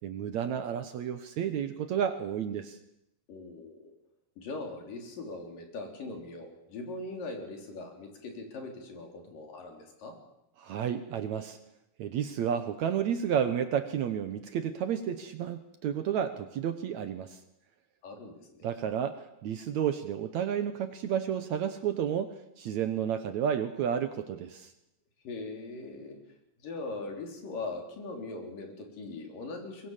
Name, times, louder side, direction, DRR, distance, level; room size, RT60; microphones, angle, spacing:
voice 1, 0.0-2.8 10.6-11.6 12.0-17.4 18.6-24.7, right 8 dB, 65° right, 10 dB, 2.0 m, -31 dB
voice 2, 3.3-3.9 4.4-10.1 18.0-18.7 25.2-26.2 26.6-29.9, left 3 dB, 70° left, 3 dB, 5.4 m, -40 dB
23.5 x 21.5 x 7.3 m, 0.83 s
omnidirectional pair, 4.1 m